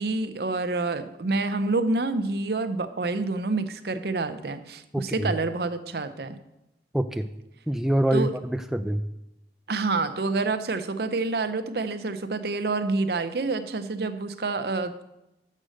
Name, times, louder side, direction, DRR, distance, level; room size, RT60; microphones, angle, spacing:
voice 1, 0.0-6.4 8.1-8.4 9.7-15.0, right 3 dB, 65° right, 10 dB, 0.6 m, -28 dB
voice 2, 4.9-5.3 6.9-7.3 7.7-9.0, right 1 dB, ahead, 6 dB, 0.3 m, -25 dB
7.4 x 6.3 x 6.5 m, 0.91 s
head